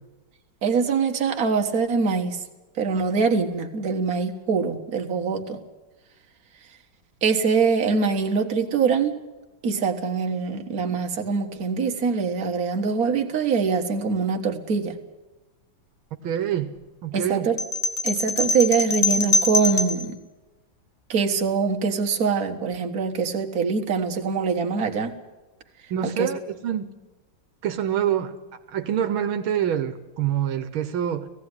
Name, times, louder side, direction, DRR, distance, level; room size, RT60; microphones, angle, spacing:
voice 1, 0.6-2.4 2.8-5.6 7.2-9.1 9.6-15.0 17.1-17.6 18.0-20.2 21.1-25.1 26.0-26.3, right 5 dB, 45° right, 3 dB, 1.8 m, -23 dB
voice 2, 16.2-16.7 17.0-17.5 25.9-26.8 27.6-28.3 28.7-31.3, right 9 dB, 85° right, 9 dB, 1.8 m, -26 dB
sound 1, 17.6-20.0, left 2 dB, 30° left, 1.2 m, -23 dB
18.0 x 15.5 x 9.8 m, 1.1 s
omnidirectional pair, 2.2 m